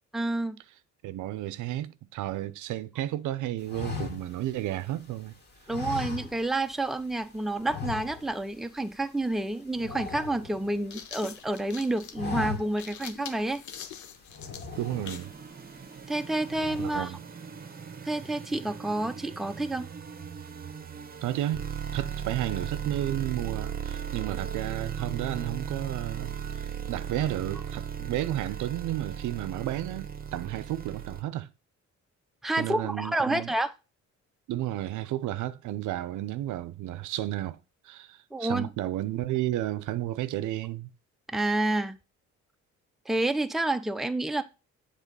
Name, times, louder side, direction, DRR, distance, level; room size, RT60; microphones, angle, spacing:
voice 1, 0.1-0.6 5.7-13.6 16.1-17.1 18.0-19.9 32.4-33.7 38.3-38.7 41.3-42.0 43.1-44.4, right 2 dB, ahead, 0.5 m, -29 dB
voice 2, 1.0-5.4 14.8-15.3 16.8-17.2 21.2-21.7 21.9-31.5 32.5-33.5 34.5-37.6 37.8-40.9, right 14 dB, 80° right, 0.6 m, -32 dB
sound 1, 3.7-5.2 5.7-6.8 7.0-7.2 7.6-8.5 8.8-9.0 9.3-11.0 11.5-11.7 12.0-13.0 13.4-13.5 14.3-15.4 15.9-16.2 16.5-17.1, left 4 dB, 35° left, 2.2 m, -38 dB
sound 2, 10.6-15.4, left 8 dB, 70° left, 0.9 m, -44 dB
sound 3, 14.7-31.2, right 7 dB, 30° right, 0.9 m, -37 dB
7.3 x 3.6 x 5.3 m
cardioid pair, 90°, 30 cm